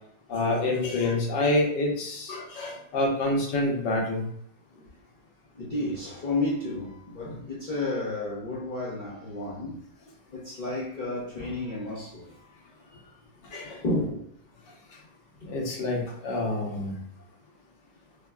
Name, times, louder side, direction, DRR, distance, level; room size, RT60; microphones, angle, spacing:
voice 1, 0.3-4.3 13.5-13.8 15.4-17.0, left 2 dB, 80° left, 1.6 m, -27 dB
voice 2, 5.5-9.8 10.3-12.5 13.8-14.3 16.3-16.4, left 2 dB, 40° left, 0.7 m, -32 dB
5.0 x 2.2 x 2.3 m
omnidirectional pair, 1.9 m